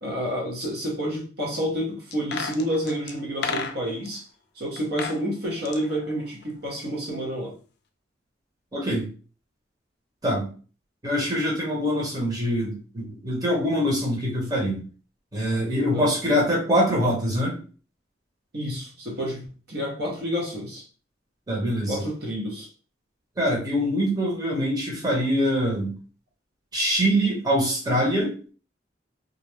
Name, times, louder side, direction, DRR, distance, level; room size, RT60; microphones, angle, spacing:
voice 1, 0.0-4.3 4.5-7.5 15.9-16.1 18.5-20.9 21.9-22.7, equal, 60° right, -2 dB, 0.8 m, -29 dB
sound 1, 2.1-4.1 4.8-5.2 5.5-6.9 7.1-7.2, left 5 dB, 60° left, 0.4 m, -33 dB
voice 2, 8.7-9.1 10.2-10.5 11.0-14.8 15.3-17.6 21.5-22.0 23.4-25.9 26.7-28.4, equal, 20° right, -3 dB, 0.9 m, -24 dB
2.5 x 2.0 x 3.0 m, 0.38 s
head